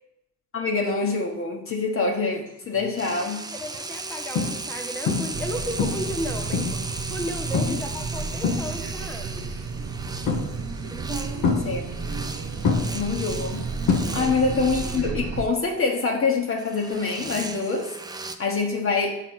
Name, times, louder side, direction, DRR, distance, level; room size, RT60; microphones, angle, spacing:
voice 1, 0.5-3.4 7.7-7.8 11.6-11.8 12.9-13.6 14.1-17.9 18.4-19.2, left 4 dB, 45° left, 1 dB, 1.1 m, -25 dB
sound 1, 2.7-3.0 3.6-3.8 4.3-4.8 5.1-5.5 5.8-6.9 7.5-7.9 8.2-9.1 10.3-10.8 11.4-12.3 12.6-14.5 14.8-15.2 17.3-17.4, left 5 dB, 80° left, 1.0 m, -26 dB
sound 2, 3.0-15.1 16.6-18.4, right 3 dB, 15° right, 0.5 m, -36 dB
voice 2, 3.5-6.7 7.1-9.5 10.9-11.5, equal, 5° left, 2 dB, 1.2 m, -34 dB
sound 3, 5.3-15.4, right 4 dB, 55° right, 0.9 m, -32 dB
5.9 x 4.5 x 6.2 m, 0.88 s
cardioid pair, 90°, 30 cm